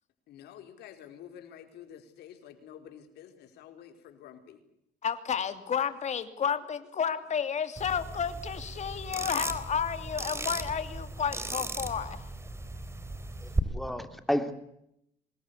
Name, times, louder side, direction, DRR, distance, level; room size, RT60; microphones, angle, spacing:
voice 1, 0.3-4.6, left 9 dB, 75° left, 7 dB, 4.6 m, -49 dB
voice 2, 5.0-12.3, left 7 dB, 45° left, 10 dB, 2.8 m, -31 dB
sound 1, 7.8-13.6, right 2 dB, 15° right, 3.6 m, -36 dB
voice 3, 13.4-14.5, equal, ahead, 8 dB, 3.2 m, -31 dB
25.5 x 21.0 x 8.3 m, 0.77 s
cardioid pair, 110°, 17 cm